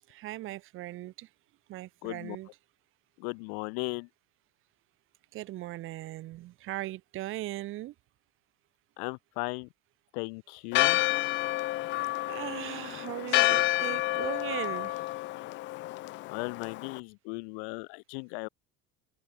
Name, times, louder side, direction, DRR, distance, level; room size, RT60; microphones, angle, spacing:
voice 1, 0.1-1.3 1.7-2.5 5.3-7.9 12.3-15.2, right 16 dB, 40° right, 1.4 m, -38 dB
voice 2, 2.0-2.4 3.2-4.1 9.0-9.7 10.1-11.0 16.3-18.5, left 40 dB or more, 80° left, 0.6 m, -37 dB
Church bell, 10.7-17.0, left 18 dB, 35° left, 0.5 m, -29 dB
open air
cardioid pair, 175°, 32 cm